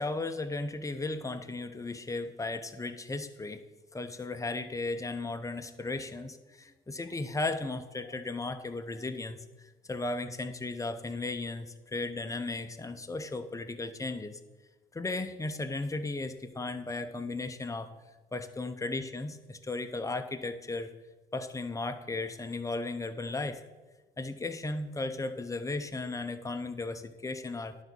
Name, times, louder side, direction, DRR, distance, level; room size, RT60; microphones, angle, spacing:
voice 1, 0.0-3.6 3.9-14.4 14.9-17.9 18.3-20.9 21.3-23.7 24.2-27.8, left 2 dB, 15° left, 8 dB, 0.7 m, -35 dB
10.5 x 4.0 x 6.2 m, 1.2 s
cardioid pair, 90°, 20 cm